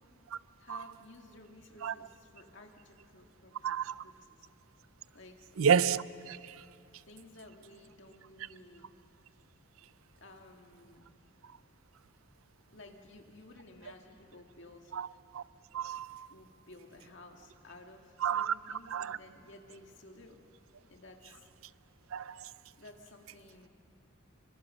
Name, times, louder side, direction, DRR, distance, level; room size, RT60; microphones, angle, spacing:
voice 1, 0.6-4.5 5.1-5.4 7.1-8.9 10.2-11.1 12.7-14.9 16.3-20.4 20.9-21.5 22.8-23.7, left 2 dB, 60° left, 2.0 m, -54 dB
voice 2, 3.6-4.0 5.6-6.6 14.9-15.1 15.3-15.4 15.7-16.3 18.2-18.5 18.9-19.2 22.1-22.5, right 7 dB, 85° right, 0.5 m, -30 dB
25.5 x 24.5 x 6.3 m
head